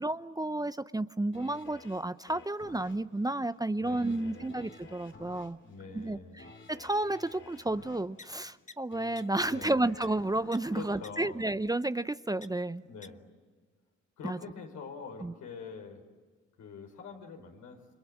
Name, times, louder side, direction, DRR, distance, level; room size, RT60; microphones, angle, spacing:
voice 1, 0.0-5.6 5.9-12.8 14.2-14.4 15.2-15.3, right 2 dB, 15° right, 13 dB, 0.8 m, -32 dB
sound 1, 1.3-12.3 12.7-12.8, left 4 dB, 40° left, 2.6 m, -53 dB
voice 2, 3.8-4.6 5.6-6.5 9.5-9.9 10.7-11.4 12.8-13.2 14.2-16.0 16.6-17.8, left 5 dB, 75° left, 3 dB, 4.8 m, -45 dB
sound 2, 8.2-8.3 8.7-8.8 9.2-9.3 9.6-9.7 10.0-10.1 10.5-10.6 11.0-11.1 12.4-12.5 13.0-13.1, left 4 dB, 25° left, 1.1 m, -46 dB
30.0 x 26.5 x 7.6 m, 1.5 s
supercardioid pair, 50°, 29 cm